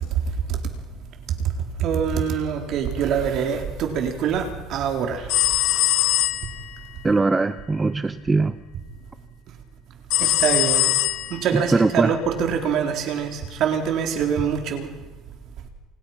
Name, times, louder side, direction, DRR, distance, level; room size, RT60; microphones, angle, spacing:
voice 1, 1.8-5.4 10.2-10.9 11.3-14.9, right 7 dB, 50° right, 4 dB, 4.1 m, -24 dB
sound 1, 5.3-6.7 10.1-11.6, left 17 dB, 65° left, 2.1 m, -21 dB
voice 2, 7.0-8.6 11.5-12.2, right 3 dB, 15° right, 12 dB, 0.9 m, -21 dB
28.5 x 27.5 x 5.9 m, 1.2 s
cardioid pair, 135°, 0 cm